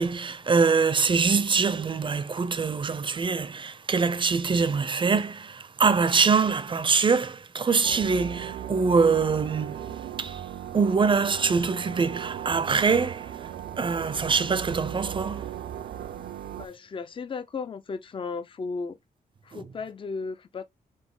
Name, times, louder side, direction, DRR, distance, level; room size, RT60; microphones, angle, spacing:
voice 1, 0.0-9.9 10.2-10.4 10.7-13.5 13.8-15.5 19.5-19.7, right 5 dB, 30° right, 0.5 m, -24 dB
sound 1, 7.8-16.7, right 10 dB, 85° right, 0.5 m, -37 dB
voice 2, 16.5-19.0 19.4-20.6, left 4 dB, 35° left, 0.5 m, -35 dB
4.1 x 2.6 x 3.7 m
cardioid pair, 85°, 16 cm